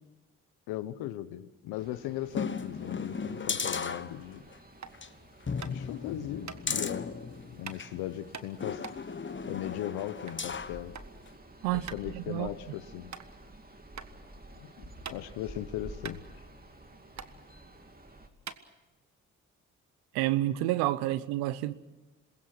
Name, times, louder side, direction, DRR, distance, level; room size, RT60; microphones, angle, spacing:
voice 1, 0.7-4.4 5.7-7.1 7.5-8.8 9.5-10.9 11.7-13.1 14.6-16.2, left 13 dB, 85° left, 1.0 m, -38 dB
sound 1, 1.8-18.3, right 1 dB, 25° right, 2.9 m, -51 dB
sound 2, 2.3-4.6 4.9-5.1 5.5-8.0 8.6-10.8 11.3-11.4, left 5 dB, 30° left, 1.3 m, -36 dB
sound 3, 4.8-5.0 5.6-5.9 6.4-6.6 7.7-7.8 8.3-10.5 10.7-11.1 11.4-11.5 11.9-12.1 12.5-12.6 13.1-13.3 14.0-14.1 14.5-15.5 15.8-15.9 16.0-16.9 17.1-17.3 18.0-18.1 18.4-19.2, right 6 dB, 50° right, 1.5 m, -43 dB
voice 2, 12.1-12.5 20.1-21.7, right 15 dB, 85° right, 0.8 m, -29 dB
27.0 x 21.5 x 6.1 m
hypercardioid pair, 45°, 36 cm